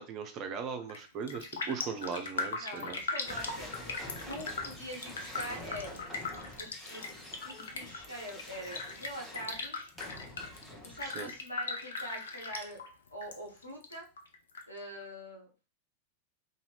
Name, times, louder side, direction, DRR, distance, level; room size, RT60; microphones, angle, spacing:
voice 1, 0.0-3.0 11.0-11.3, right 6 dB, 35° right, 6 dB, 0.5 m, -38 dB
Raindrop, 0.8-1.0 1.3-13.4 13.6-14.6 15.0-15.1, left 4 dB, 65° left, 0.4 m, -39 dB
voice 2, 2.6-6.1 6.6-7.1 7.4-9.9 10.8-12.8 13.1-14.1 14.7-15.7, equal, 85° left, -1 dB, 0.9 m, -44 dB
sound 1, 3.2-11.4, left 1 dB, 5° left, 0.9 m, -47 dB
2.6 x 2.4 x 3.2 m, 0.33 s
figure-of-eight pair, 90°, 0 cm